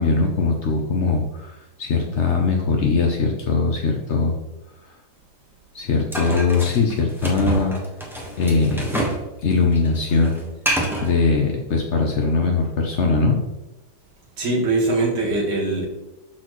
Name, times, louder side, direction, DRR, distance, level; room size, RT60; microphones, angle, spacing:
voice 1, 0.0-4.3 5.7-7.8 8.4-9.0 9.4-10.4 11.0-13.4, left 4 dB, 65° left, 1 dB, 0.6 m, -21 dB
sound 1, 6.1-9.3 9.5-11.1, right 1 dB, ahead, 0.7 m, -26 dB
voice 2, 14.4-15.9, right 2 dB, 55° right, -1 dB, 2.3 m, -21 dB
12.0 x 4.3 x 3.1 m, 1.0 s
omnidirectional pair, 2.3 m